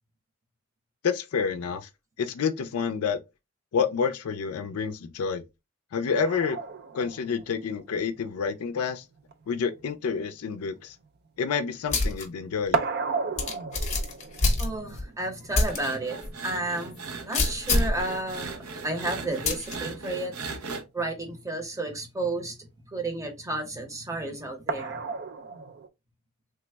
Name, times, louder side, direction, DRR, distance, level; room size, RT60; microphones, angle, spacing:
voice 1, 1.0-1.9 2.2-3.2 3.7-5.4 5.9-6.6 6.9-9.0 9.5-11.0 11.4-12.8, left 6 dB, 85° left, 0.4 m, -28 dB
sound 1, 6.2-11.9 12.2-19.2 20.6-20.7 21.1-21.2 24.7-25.9, right 5 dB, 50° right, 0.4 m, -35 dB
sound 2, 11.9-12.2 12.7-12.8 13.4-15.1 15.5-15.8 16.2-16.3 17.3-18.0 19.5-19.8, left 2 dB, 30° left, 0.8 m, -25 dB
voice 2, 14.6-16.2 16.4-20.3 20.9-22.6 22.9-25.0, right 2 dB, 15° right, 0.7 m, -32 dB
sound 3, 15.7-20.8, right 4 dB, 80° right, 0.7 m, -38 dB
3.3 x 2.0 x 3.2 m
head